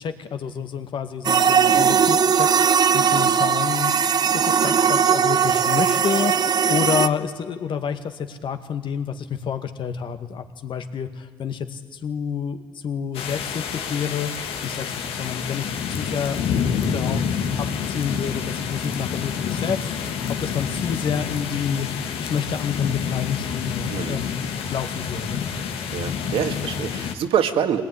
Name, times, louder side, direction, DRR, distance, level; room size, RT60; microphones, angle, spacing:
voice 1, 0.0-3.9 4.3-14.3 14.6-16.4 16.9-17.2 17.6-21.9 22.2-25.5, left 7 dB, 60° left, 8 dB, 2.0 m, -29 dB
sound 1, 1.2-7.1, right 7 dB, 45° right, 0.9 m, -19 dB
sound 2, 13.1-27.1, left 7 dB, 80° left, 2.0 m, -28 dB
voice 2, 23.9-24.2 25.9-27.8, right 8 dB, 70° right, 7 dB, 2.0 m, -25 dB
22.5 x 19.0 x 9.9 m, 1.5 s
cardioid pair, 80°, 10 cm